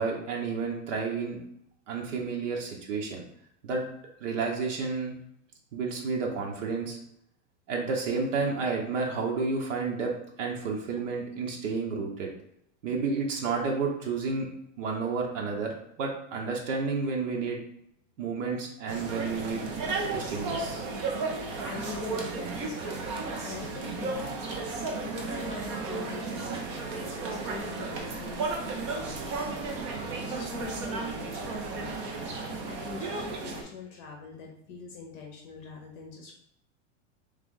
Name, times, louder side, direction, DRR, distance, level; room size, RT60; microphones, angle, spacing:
voice 1, 0.0-1.4 1.9-3.2 3.6-3.8 4.2-5.1 5.7-7.0 7.7-10.1 10.4-12.3 12.8-14.5 14.8-15.7 16.0-17.6 18.2-19.7 20.1-20.8, right 4 dB, 75° right, 0 dB, 1.1 m, -31 dB
sound 1, 18.9-33.6, right 3 dB, 25° right, 0.4 m, -34 dB
voice 2, 21.3-24.4 24.7-32.2 32.6-36.3, left 4 dB, 30° left, 0 dB, 0.7 m, -43 dB
3.7 x 3.4 x 3.7 m, 0.75 s
supercardioid pair, 175°, 37 cm